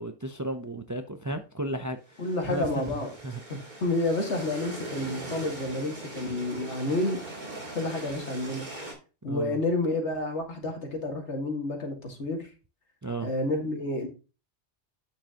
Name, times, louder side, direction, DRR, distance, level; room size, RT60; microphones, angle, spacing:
voice 1, 0.0-3.0 3.2-3.4 9.3-9.6 13.0-13.3, right 1 dB, 25° right, 0.5 m, -34 dB
sound 1, 2.1-8.9, right 2 dB, 40° right, 2.5 m, -40 dB
voice 2, 2.2-3.1 3.5-7.2 7.7-8.7 9.2-12.5 13.2-14.1, left 2 dB, 75° left, 2.2 m, -30 dB
9.1 x 6.6 x 2.9 m
omnidirectional pair, 1.2 m